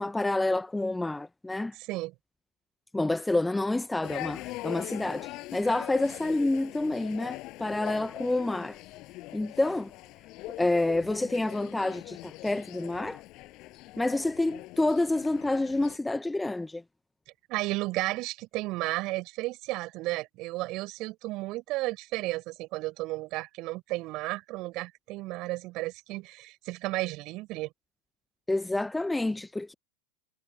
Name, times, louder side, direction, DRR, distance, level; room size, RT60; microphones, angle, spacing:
voice 1, 0.0-1.7 2.9-8.8 9.3-9.9 10.6-13.2 14.0-16.8 28.5-29.7, left 2 dB, 5° left, 0.9 m, -28 dB
voice 2, 1.7-2.1 17.5-27.7, right 20 dB, 40° right, 6.6 m, -33 dB
sound 1, 4.0-16.0, left 19 dB, 40° left, 7.8 m, -42 dB
figure-of-eight pair, 90°, 0 cm